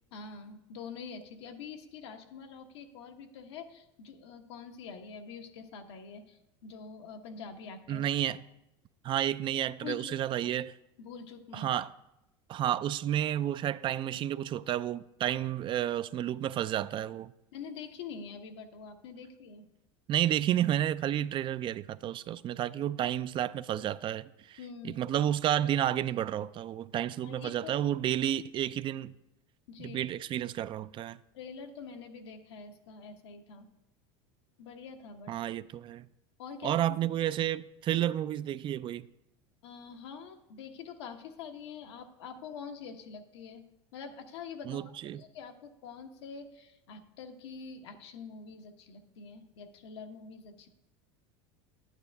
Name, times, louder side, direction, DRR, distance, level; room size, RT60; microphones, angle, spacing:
voice 1, 0.1-8.0 9.8-10.2 10.4-10.5 11.0-11.7 17.5-19.7 24.6-25.0 27.2-27.8 29.7-30.0 31.3-33.7 34.6-35.3 36.4-37.1 37.9-38.0 39.6-43.6 43.9-44.9 45.2-50.7, left 5 dB, 85° left, 1.1 m, -45 dB
voice 2, 7.9-8.4 9.0-10.7 11.5-11.9 12.5-17.3 20.1-24.6 24.8-29.1 29.8-31.2 35.3-36.1 36.6-39.1 44.7-45.2, right 11 dB, 35° right, 0.3 m, -31 dB
11.5 x 8.9 x 3.4 m
supercardioid pair, 110°, 14 cm